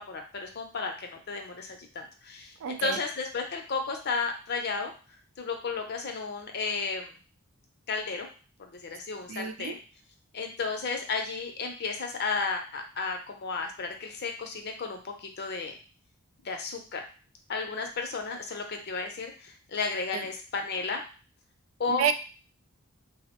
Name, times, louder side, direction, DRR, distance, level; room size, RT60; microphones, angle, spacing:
voice 1, 0.0-4.9 5.4-7.1 7.9-8.3 8.6-9.8 10.3-15.8 16.4-17.0 17.5-21.0 21.8-22.0, left 4 dB, 50° left, 3 dB, 0.6 m, -33 dB
voice 2, 2.6-3.0 9.3-9.7 20.1-20.2 22.0-22.1, right 7 dB, 65° right, 10 dB, 0.3 m, -29 dB
3.8 x 2.0 x 2.9 m, 0.36 s
head